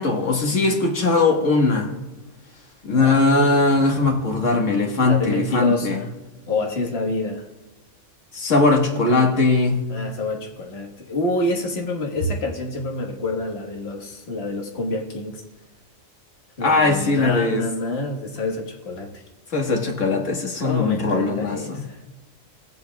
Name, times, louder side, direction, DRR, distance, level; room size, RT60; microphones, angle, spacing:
voice 1, 0.0-1.9 2.8-6.0 8.3-9.8 16.6-17.6 19.5-21.6, left 3 dB, 75° left, 2 dB, 1.8 m, -19 dB
voice 2, 2.9-3.3 5.0-6.1 6.5-7.5 9.9-15.4 16.6-19.2 20.6-22.0, left 2 dB, 55° left, 0 dB, 1.6 m, -27 dB
17.0 x 8.1 x 2.3 m, 1.1 s
omnidirectional pair, 1.3 m